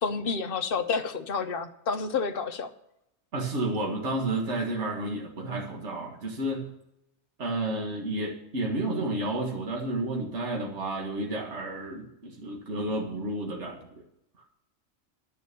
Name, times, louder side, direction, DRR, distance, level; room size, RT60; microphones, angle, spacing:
voice 1, 0.0-2.7, left 5 dB, 50° left, 7 dB, 1.0 m, -29 dB
voice 2, 3.3-6.7 7.4-14.0, right 2 dB, 65° right, 0 dB, 2.0 m, -31 dB
11.5 x 7.1 x 6.8 m, 0.81 s
omnidirectional pair, 1.3 m